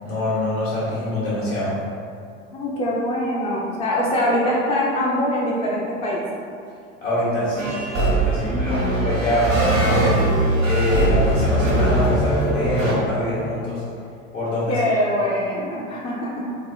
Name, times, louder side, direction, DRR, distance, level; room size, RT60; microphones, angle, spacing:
voice 1, 0.0-1.7 7.0-10.2 10.6-13.8 14.3-14.8, left 1 dB, 75° left, -10 dB, 1.4 m, -24 dB
voice 2, 2.5-6.2 8.3-8.9 14.7-16.3, left 1 dB, 15° left, -5 dB, 0.4 m, -23 dB
sound 1, 7.6-12.9, right 1 dB, 90° right, 0.7 m, -20 dB
4.1 x 2.0 x 2.3 m, 2.3 s
figure-of-eight pair, 70°, 38 cm